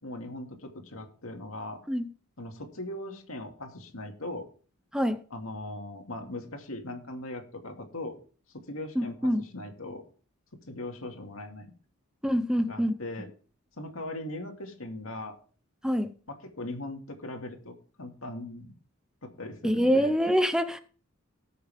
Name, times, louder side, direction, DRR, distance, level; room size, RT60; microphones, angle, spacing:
voice 1, 0.0-1.8 2.4-4.5 5.3-8.2 8.5-10.0 10.7-11.7 12.6-13.3 13.8-15.4 16.3-18.7 19.2-20.1, left 1 dB, 90° left, 2.3 m, -39 dB
voice 2, 9.0-9.4 12.2-12.9 15.8-16.1 19.6-20.8, equal, 5° right, 0.7 m, -25 dB
19.0 x 6.7 x 3.5 m
head